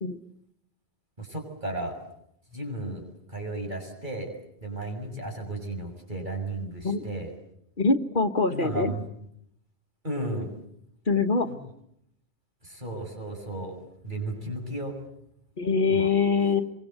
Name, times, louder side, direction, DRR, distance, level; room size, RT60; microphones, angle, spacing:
voice 1, 1.2-2.0 2.5-3.0 3.3-4.3 4.6-7.3 8.5-9.0 10.0-10.5 11.4-11.6 12.6-13.8 14.0-14.9 15.9-16.1, right 2 dB, 50° right, 2 dB, 7.1 m, -34 dB
voice 2, 7.8-8.9 11.1-11.5 15.6-16.6, left 4 dB, 55° left, 7 dB, 1.5 m, -24 dB
27.0 x 24.5 x 8.1 m, 0.75 s
omnidirectional pair, 1.0 m